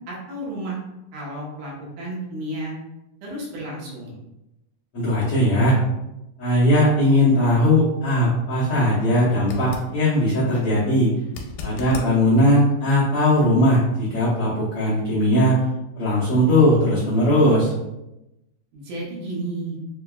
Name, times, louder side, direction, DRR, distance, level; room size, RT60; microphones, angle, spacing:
voice 1, 0.1-0.8 1.1-2.7 3.2-4.2 18.7-19.8, right 1 dB, 75° right, -4 dB, 2.5 m, -32 dB
voice 2, 4.9-5.8 6.4-11.1 11.6-15.5 16.0-17.7, left 1 dB, 70° left, -10 dB, 1.4 m, -19 dB
sound 1, 9.4-9.9 11.3-12.1 15.1-15.2, left 5 dB, 85° left, 2.2 m, -36 dB
6.3 x 2.2 x 2.3 m, 0.92 s
omnidirectional pair, 3.8 m